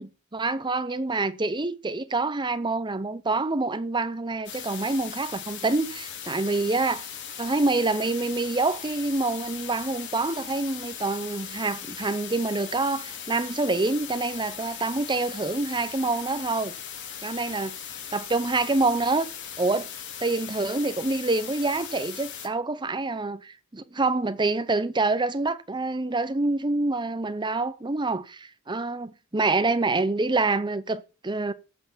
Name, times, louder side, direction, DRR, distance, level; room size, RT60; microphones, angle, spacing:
voice 1, 0.0-7.1 7.4-16.7 17.2-17.7 18.1-19.3 19.6-19.9 20.2-31.5, right 3 dB, 20° right, 0.8 m, -26 dB
sound 1, 4.5-22.5, left 8 dB, 60° left, 2.7 m, -39 dB
14.0 x 5.8 x 7.2 m
head